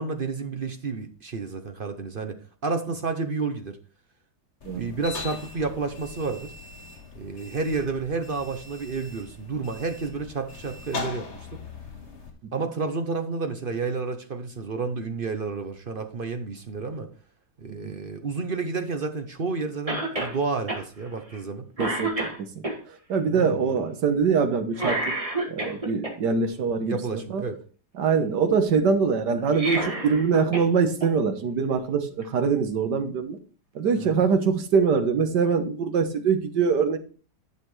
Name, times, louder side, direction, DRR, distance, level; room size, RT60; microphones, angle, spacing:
voice 1, 0.0-3.8 4.7-6.5 7.1-11.6 12.5-17.1 17.6-21.7 23.3-23.9 26.8-27.6 34.0-34.2, right 4 dB, 50° right, 7 dB, 0.7 m, -30 dB
sound 1, 4.6-12.3, left 4 dB, 40° left, 1.7 m, -40 dB
Cough, 19.9-20.4 20.7-20.8 21.3-21.5 21.8-22.8 24.7-26.1 29.4-30.7 31.0-31.1 32.2-32.3, right 2 dB, 20° right, 2.0 m, -29 dB
voice 2, 21.8-22.1 23.1-25.2 25.5-27.4 28.0-33.4 33.8-37.0, right 5 dB, 75° right, 8 dB, 1.8 m, -23 dB
11.0 x 6.6 x 3.2 m, 0.38 s
omnidirectional pair, 1.8 m